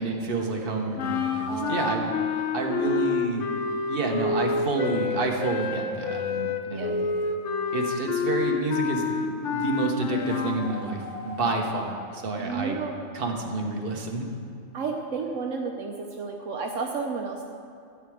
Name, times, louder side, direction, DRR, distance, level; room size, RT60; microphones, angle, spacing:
voice 1, 0.0-2.1 2.5-3.5 3.9-7.0 7.7-12.8 13.1-14.3, right 3 dB, 45° right, 1 dB, 1.4 m, -29 dB
sound 1, 1.0-10.6, left 5 dB, 70° left, 1.1 m, -28 dB
sound 2, 1.0-3.4 9.9-13.2, left 2 dB, 25° left, 1.9 m, -41 dB
voice 2, 1.5-1.9 6.6-7.0 12.4-12.9 14.7-17.5, right 4 dB, 75° right, 2 dB, 1.1 m, -32 dB
13.0 x 4.9 x 8.6 m, 2.4 s
omnidirectional pair, 1.3 m